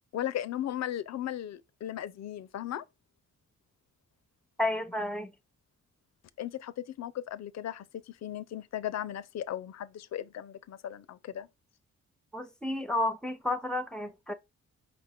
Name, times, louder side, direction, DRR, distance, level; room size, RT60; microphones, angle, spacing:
voice 1, 0.1-2.8 6.4-11.5, left 11 dB, 60° left, 0.5 m, -36 dB
voice 2, 4.6-5.3 12.3-14.3, left 1 dB, ahead, 0.6 m, -31 dB
5.0 x 2.3 x 3.5 m
cardioid pair, 75°, 30 cm